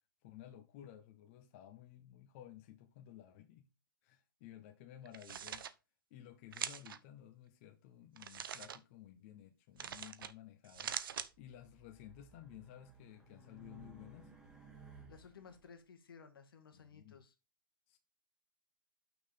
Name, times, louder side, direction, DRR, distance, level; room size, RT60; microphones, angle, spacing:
voice 1, 0.2-3.7 4.0-5.6 6.1-11.0 11.4-14.3 16.7-17.2 17.9-18.0, left 11 dB, 35° left, 0.9 m, -55 dB
sound 1, 5.1-5.7 6.5-7.0 8.2-8.8 9.8-10.3 10.6-11.3, right 8 dB, 75° right, 0.8 m, -43 dB
Race car auto racing, 11.3-15.6, right 2 dB, 5° right, 1.4 m, -58 dB
voice 2, 15.1-17.3, left 6 dB, 80° left, 1.7 m, -57 dB
6.2 x 5.4 x 5.1 m
hypercardioid pair, 155°, 12 cm